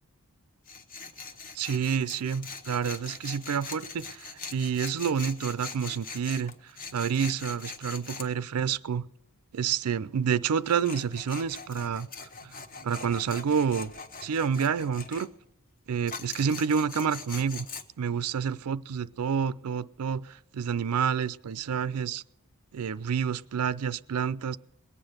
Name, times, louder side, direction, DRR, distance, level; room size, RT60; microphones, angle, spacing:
Tools, 0.7-8.3 10.5-15.3 16.1-17.8, left 4 dB, 40° left, 0.9 m, -42 dB
voice 1, 1.5-6.5 6.9-9.1 9.5-12.1 12.4-13.9 14.2-15.3 15.9-17.7 18.0-22.2 22.7-24.6, right 7 dB, 90° right, 15 dB, 0.4 m, -29 dB
20.5 x 8.9 x 6.5 m, 0.84 s
head